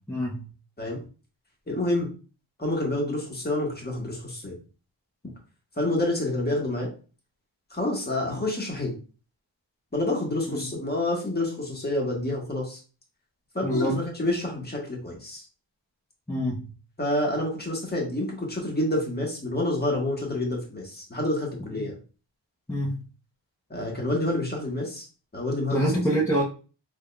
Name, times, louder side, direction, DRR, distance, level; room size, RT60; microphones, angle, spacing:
voice 1, 0.1-0.5 10.5-10.7 13.6-14.0 16.3-16.6 21.7-21.8 22.7-23.0 25.7-26.4, equal, 5° left, 0.8 m, -26 dB
voice 2, 1.7-2.1 2.6-4.6 5.8-6.9 7.7-9.0 9.9-12.8 13.5-15.4 17.0-22.0 23.7-25.1 25.3-25.8, left 1 dB, 20° left, 1.3 m, -28 dB
3.6 x 3.5 x 2.2 m
wide cardioid pair, 85°, 44 cm